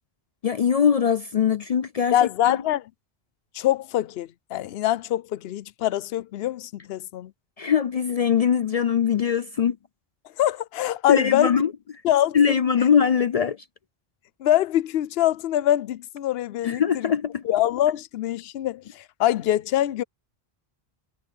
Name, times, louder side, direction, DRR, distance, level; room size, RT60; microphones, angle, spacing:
voice 1, 0.4-2.1 2.5-2.6 7.6-9.8 11.1-11.7 12.3-13.6 16.6-17.4, left 7 dB, 55° left, 0.4 m, -21 dB
voice 2, 2.1-2.9 3.5-7.3 10.4-11.6 12.0-12.6 14.4-17.1 17.4-20.0, left 12 dB, 75° left, 0.8 m, -24 dB
omnidirectional pair, 1.1 m